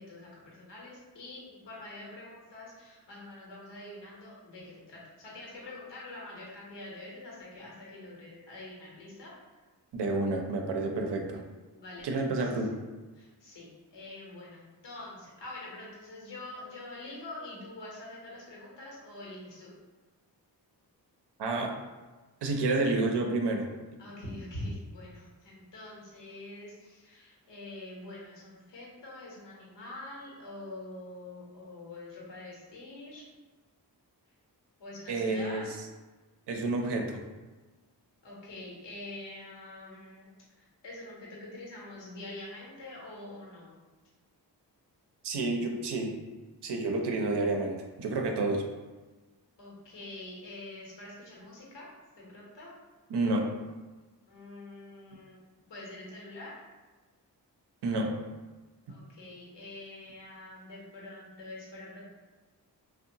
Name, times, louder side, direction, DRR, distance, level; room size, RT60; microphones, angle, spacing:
voice 1, 0.0-9.3 11.7-12.6 13.1-19.7 24.0-33.3 34.8-35.7 38.2-43.8 49.6-51.9 52.2-52.7 54.3-55.4 55.7-56.6 58.9-62.0, left 2 dB, 80° left, -4 dB, 1.0 m, -45 dB
voice 2, 9.9-11.4 12.0-12.8 21.4-21.8 22.4-23.7 35.1-35.9 36.5-37.2 45.2-46.1 46.6-48.6 53.1-53.5 57.8-58.1, right 2 dB, 70° right, 2 dB, 0.6 m, -29 dB
2.8 x 2.1 x 2.7 m, 1.3 s
cardioid pair, 45°, 42 cm